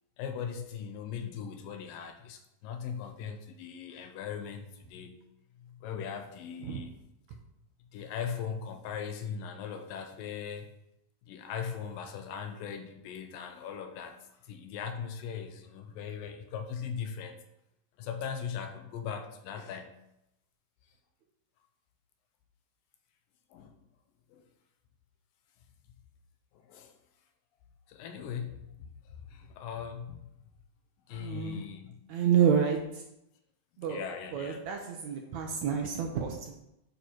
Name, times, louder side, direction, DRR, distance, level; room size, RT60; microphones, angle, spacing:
voice 1, 0.2-5.2 5.6-6.9 7.9-10.7 11.3-17.4 18.0-20.0 23.5-23.8 24.3-24.4 26.5-26.9 27.9-30.3 31.1-32.0 33.9-34.6 35.2-35.3, left 7 dB, 80° left, 7 dB, 2.5 m, -39 dB
voice 2, 31.2-31.6 32.1-32.8 33.8-34.1 34.3-36.6, right 7 dB, 70° right, 2 dB, 1.9 m, -29 dB
9.4 x 6.5 x 4.6 m, 0.84 s
omnidirectional pair, 4.0 m